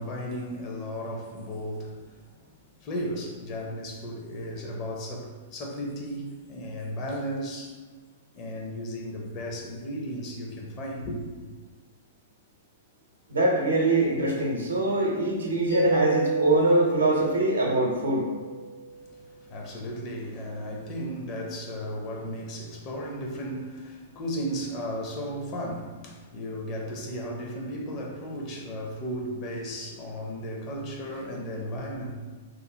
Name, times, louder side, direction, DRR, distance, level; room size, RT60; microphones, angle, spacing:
voice 1, 0.0-2.2 2.8-7.8 8.3-11.3 19.1-32.2, equal, 35° left, 0.6 m, -35 dB
voice 2, 13.3-18.3, right 2 dB, 75° right, 0.7 m, -23 dB
Mallet percussion, 15.7-19.2, right 4 dB, 75° left, 1.4 m, -30 dB
3.1 x 2.2 x 2.7 m
figure-of-eight pair, 105°, 0 cm